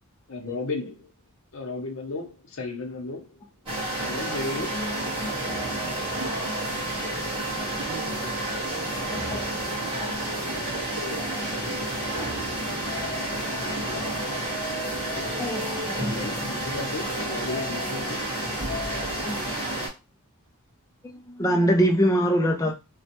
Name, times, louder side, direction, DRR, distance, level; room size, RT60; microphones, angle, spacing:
voice 1, 0.3-1.1 1.5-3.4 4.0-4.9 16.0-18.3, left 2 dB, 60° left, 0.7 m, -34 dB
sound 1, 3.7-19.9, right 1 dB, 25° right, 1.4 m, -30 dB
voice 2, 6.2-6.9 7.8-8.5 9.6-12.5, right 3 dB, 60° right, 0.5 m, -45 dB
voice 3, 15.4-16.1 19.2-19.4 21.0-22.7, equal, 15° left, 0.4 m, -23 dB
3.0 x 2.2 x 2.9 m
head